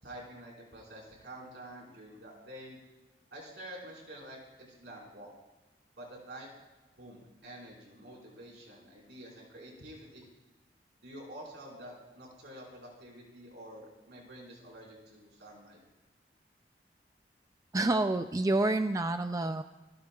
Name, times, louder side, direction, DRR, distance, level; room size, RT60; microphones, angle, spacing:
voice 1, 0.0-2.8 3.3-4.4 4.8-5.3 6.0-6.5 7.0-10.3 11.0-15.8, right 1 dB, 75° right, -3 dB, 5.0 m, -48 dB
voice 2, 17.7-19.6, right 2 dB, 20° right, 8 dB, 0.4 m, -28 dB
26.0 x 13.5 x 2.4 m, 1.1 s
head